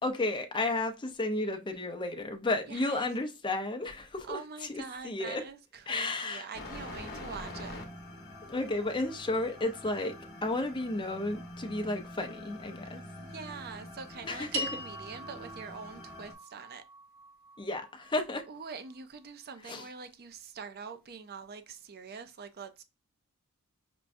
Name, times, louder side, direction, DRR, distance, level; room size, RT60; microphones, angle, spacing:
voice 1, 0.0-5.4 5.9-6.5 8.4-13.0 14.2-14.8 17.6-18.5 19.6-19.9, left 2 dB, 20° left, 0.6 m, -33 dB
voice 2, 2.7-3.1 4.2-7.8 13.2-16.8 18.5-22.8, right 5 dB, 45° right, 0.5 m, -44 dB
sound 1, 6.5-16.3, left 1 dB, 45° left, 0.9 m, -45 dB
sound 2, 14.5-19.0, right 1 dB, 85° right, 1.8 m, -42 dB
6.0 x 2.2 x 2.6 m
head